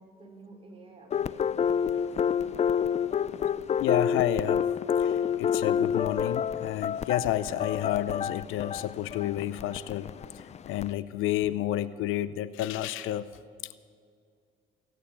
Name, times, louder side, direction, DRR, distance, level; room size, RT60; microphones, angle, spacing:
voice 1, 0.0-2.7, right 3 dB, 25° right, 1 dB, 4.3 m, -52 dB
sound 1, 1.1-10.9, left 8 dB, 30° left, 0.4 m, -28 dB
voice 2, 3.8-4.7 5.0-10.1 10.6-13.3 13.6-13.8, left 13 dB, 75° left, 16 dB, 0.6 m, -30 dB
18.0 x 9.2 x 8.6 m, 2.2 s
supercardioid pair, 85°, 21 cm